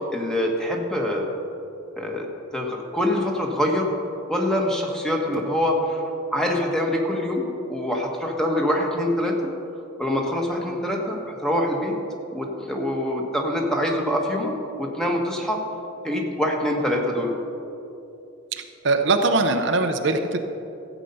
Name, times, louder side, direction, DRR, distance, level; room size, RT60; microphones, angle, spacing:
voice 1, 0.1-1.3 1.9-2.3 2.5-3.9 4.3-6.0 6.3-9.5 10.0-11.9 12.3-15.6 16.0-17.3, left 1 dB, 5° left, 0 dB, 1.4 m, -24 dB
voice 2, 18.8-20.4, right 3 dB, 65° right, 6 dB, 0.7 m, -21 dB
14.5 x 8.2 x 5.5 m, 2.8 s
head